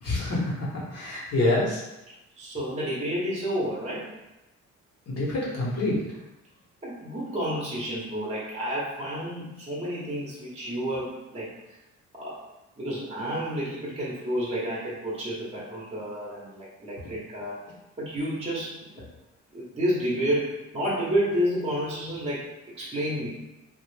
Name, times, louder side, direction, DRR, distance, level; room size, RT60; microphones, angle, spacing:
voice 1, 0.0-1.8 5.1-6.0, left 2 dB, 55° left, -6 dB, 0.8 m, -26 dB
voice 2, 2.1-4.1 6.8-11.5 12.1-12.4 12.8-17.6 18.0-19.0 19.5-22.5 22.7-23.3, equal, 20° right, -6 dB, 0.8 m, -30 dB
2.4 x 2.0 x 3.1 m, 0.95 s
cardioid pair, 90°, 30 cm